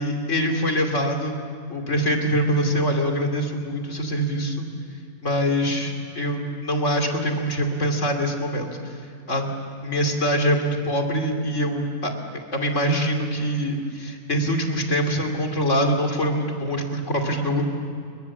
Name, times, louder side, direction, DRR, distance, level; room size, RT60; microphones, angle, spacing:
voice 1, 0.0-1.4 1.7-4.7 5.2-9.0 9.3-9.5 9.8-12.1 12.5-17.6, equal, 50° left, 3 dB, 3.0 m, -24 dB
29.0 x 23.0 x 7.3 m, 2.3 s
omnidirectional pair, 1.6 m